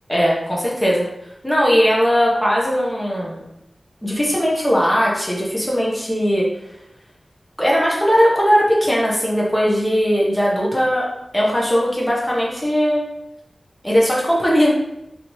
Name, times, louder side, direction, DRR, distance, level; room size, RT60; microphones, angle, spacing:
voice 1, 0.1-1.0 1.4-3.4 4.0-6.5 7.6-11.1 11.3-13.0 13.8-14.7, equal, 10° left, -5 dB, 0.8 m, -18 dB
3.1 x 2.9 x 2.9 m, 0.84 s
wide cardioid pair, 70°, 0 cm